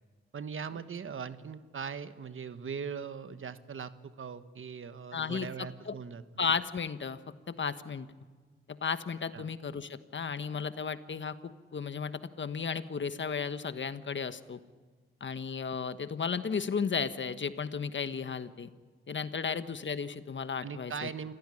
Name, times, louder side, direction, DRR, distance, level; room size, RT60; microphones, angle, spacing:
voice 1, 0.3-6.2 9.3-9.5 19.5-19.6 20.6-21.3, right 6 dB, 75° right, 11 dB, 1.3 m, -40 dB
voice 2, 5.1-5.5 5.9-6.0 6.4-7.2 7.5-8.1 8.7-14.6 15.2-18.7 19.1-21.1, left 6 dB, 60° left, 11 dB, 1.3 m, -34 dB
28.0 x 16.0 x 9.9 m, 1.5 s
cardioid pair, 65°, 21 cm